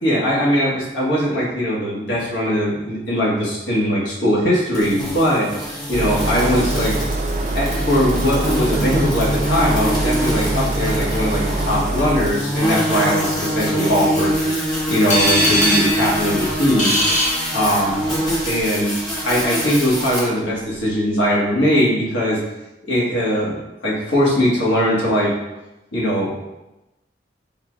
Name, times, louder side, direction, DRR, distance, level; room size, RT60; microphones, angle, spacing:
voice 1, 0.0-5.5 5.9-6.9 7.5-14.4 14.9-16.9 17.5-18.0 18.4-19.0 19.2-22.4 22.9-25.3 25.9-26.3, equal, 85° left, -5 dB, 1.4 m, -20 dB
sound 1, 4.7-20.2, equal, 20° left, 1.2 m, -24 dB
sound 2, 5.9-12.3, right 2 dB, 40° right, 0.4 m, -24 dB
sound 3, 15.1-18.1, equal, 40° left, 0.8 m, -21 dB
5.5 x 3.7 x 2.3 m, 0.97 s
head